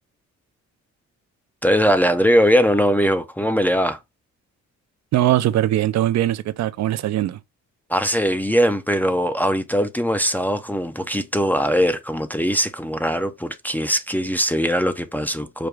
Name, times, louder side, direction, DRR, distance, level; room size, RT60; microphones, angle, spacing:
voice 1, 1.6-4.0 7.9-15.7, equal, 5° left, 0.4 m, -20 dB
voice 2, 5.1-7.4, right 13 dB, 65° right, 0.5 m, -20 dB
5.1 x 2.2 x 4.6 m
cardioid pair, 90°, 30 cm